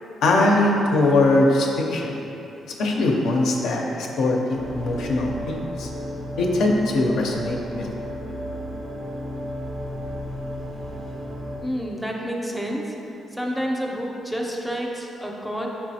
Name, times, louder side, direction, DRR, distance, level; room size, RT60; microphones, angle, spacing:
voice 1, 0.2-2.2 2.7-5.9 6.4-7.9, left 2 dB, 80° left, 0 dB, 0.4 m, -21 dB
sound 1, 4.5-11.6, equal, 80° right, 0.8 m, -33 dB
voice 2, 11.6-13.0 13.3-15.7, equal, ahead, -1 dB, 0.5 m, -29 dB
4.6 x 3.0 x 2.7 m, 3.0 s
cardioid pair, 95°, 0 cm